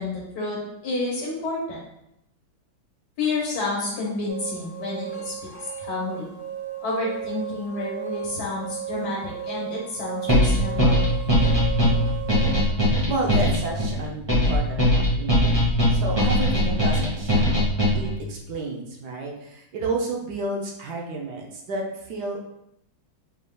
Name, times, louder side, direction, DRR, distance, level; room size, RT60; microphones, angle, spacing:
voice 1, 0.0-1.8 3.2-5.3 5.8-6.3 6.8-11.0, left 3 dB, 60° left, -4 dB, 1.3 m, -29 dB
sound 1, 4.3-12.7, right 10 dB, 80° right, 0.5 m, -35 dB
sound 2, 10.3-18.2, left 1 dB, 20° right, 0.7 m, -20 dB
voice 2, 13.1-17.6 17.9-22.5, right 2 dB, 65° right, -1 dB, 1.0 m, -31 dB
5.0 x 3.5 x 2.3 m, 0.80 s
omnidirectional pair, 2.2 m